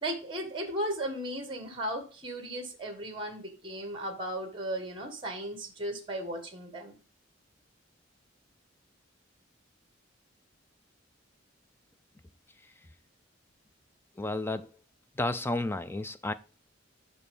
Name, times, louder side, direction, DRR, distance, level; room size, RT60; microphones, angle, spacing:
voice 1, 0.0-7.0, right 1 dB, 25° right, 1.7 m, -36 dB
voice 2, 14.2-14.7 15.2-16.3, left 2 dB, 10° left, 0.4 m, -31 dB
6.9 x 5.6 x 5.3 m
head